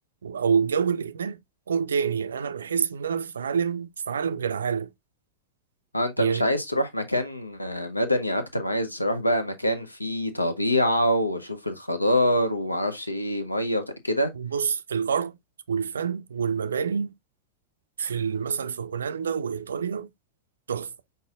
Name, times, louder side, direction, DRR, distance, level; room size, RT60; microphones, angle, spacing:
voice 1, 0.2-1.4 1.7-4.9 6.2-6.5 14.3-15.4 15.7-17.1 18.0-20.1 20.7-20.9, right 6 dB, 70° right, 0.4 m, -27 dB
voice 2, 5.9-14.3, left 1 dB, 85° left, 0.8 m, -25 dB
5.6 x 4.0 x 2.4 m
figure-of-eight pair, 90°, 0 cm